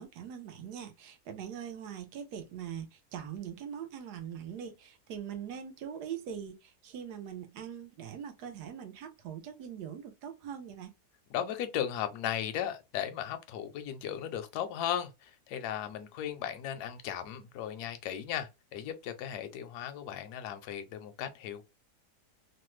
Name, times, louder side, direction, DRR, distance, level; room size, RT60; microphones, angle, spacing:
voice 1, 0.0-10.9, right 8 dB, 85° right, 1.2 m, -42 dB
voice 2, 11.3-21.6, left 10 dB, 80° left, 1.1 m, -36 dB
3.2 x 2.1 x 3.0 m
omnidirectional pair, 1.7 m